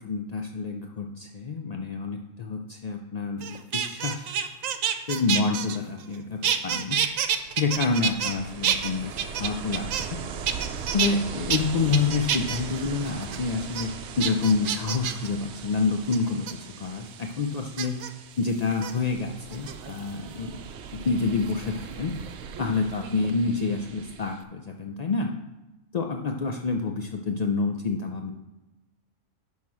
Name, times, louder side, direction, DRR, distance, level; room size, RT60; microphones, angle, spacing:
voice 1, 0.0-4.4 5.1-7.0 7.6-10.1 10.9-18.0 18.4-20.6 20.9-22.1 22.6-25.3 25.9-28.3, left 4 dB, 60° left, 3 dB, 0.4 m, -28 dB
sound 1, 3.4-6.2 6.4-8.4 8.6-10.2 10.5-11.1 11.5-11.6 11.9-12.6 13.0-13.4 13.7-13.8 14.2-15.3 16.1-16.5 17.8-18.1 18.7-18.9 19.5-20.1 21.5-22.7 22.9-23.3, right 8 dB, 90° right, 1.0 m, -28 dB
Ocean, 7.1-24.4, right 6 dB, 65° right, 0.8 m, -40 dB
10.5 x 3.7 x 6.2 m, 1.0 s
omnidirectional pair, 1.3 m